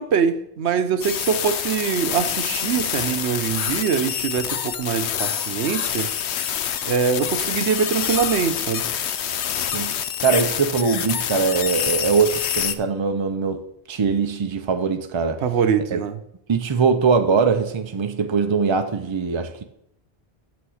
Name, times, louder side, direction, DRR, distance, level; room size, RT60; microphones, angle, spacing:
voice 1, 0.0-6.1 6.8-8.8 15.4-16.2, right 7 dB, 75° right, 1.0 m, -23 dB
sound 1, 1.0-12.7, left 9 dB, 75° left, 0.9 m, -26 dB
voice 2, 10.2-13.6 13.9-15.4 15.9-16.0 16.5-19.6, right 5 dB, 45° right, 0.3 m, -21 dB
7.0 x 6.3 x 6.3 m
omnidirectional pair, 1.1 m